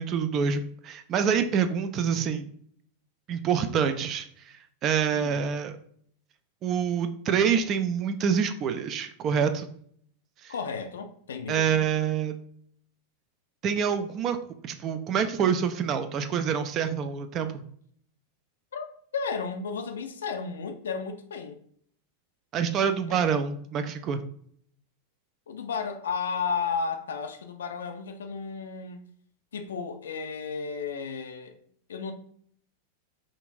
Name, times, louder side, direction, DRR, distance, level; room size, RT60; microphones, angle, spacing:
voice 1, 0.0-2.5 3.3-5.8 6.6-9.7 10.4-10.5 11.5-12.4 13.6-14.4 14.6-17.6 22.5-24.2, right 7 dB, 35° right, 0.4 m, -26 dB
voice 2, 5.1-5.5 10.5-11.8 18.7-18.9 19.1-21.6 23.1-23.3 25.5-29.0 29.5-31.6 31.9-32.1, left 5 dB, 65° left, 0.4 m, -33 dB
5.2 x 2.5 x 2.6 m
figure-of-eight pair, 90°, 0 cm